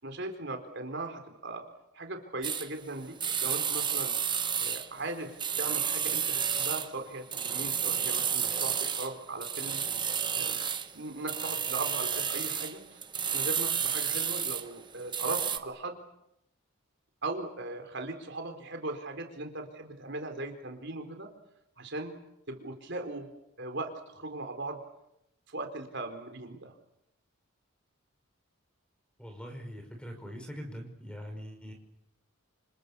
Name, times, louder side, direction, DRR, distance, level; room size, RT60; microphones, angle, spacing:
voice 1, 0.0-1.6 1.9-4.1 4.6-9.8 10.4-10.6 10.9-13.0 13.3-16.0 17.2-21.3 21.8-22.1 22.5-23.3 23.6-24.8 25.5-26.7, right 2 dB, 55° right, 5 dB, 4.1 m, -38 dB
sound 1, 2.4-2.7 3.2-5.1 5.4-6.9 7.3-9.1 9.4-10.9 11.3-14.7 15.0-15.6, right 8 dB, 20° right, 1.1 m, -31 dB
voice 2, 29.2-31.7, equal, 5° left, 5 dB, 5.3 m, -42 dB
29.0 x 26.5 x 6.9 m, 0.84 s
head